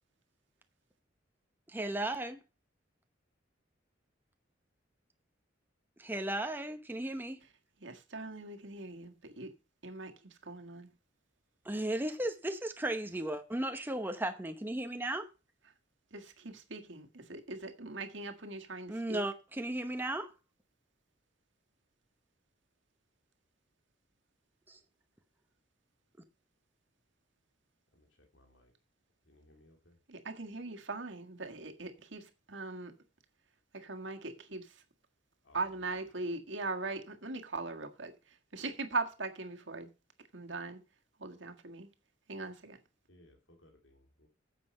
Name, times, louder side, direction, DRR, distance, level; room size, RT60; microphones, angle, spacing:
voice 1, 1.7-2.4 6.0-7.4 11.7-15.3 18.9-20.3 24.7-24.8, right 1 dB, 10° right, 0.9 m, -35 dB
voice 2, 7.8-9.5 9.8-10.1 10.4-10.9 16.1-19.2 30.1-32.9 33.7-34.8 35.5-39.9 40.3-40.8 41.2-41.9 42.3-42.8, right 3 dB, 70° right, 1.7 m, -40 dB
voice 3, 28.3-28.7 29.3-30.0 35.4-35.6 43.1-44.3, left 1 dB, 75° left, 2.7 m, -63 dB
9.4 x 7.5 x 5.4 m
head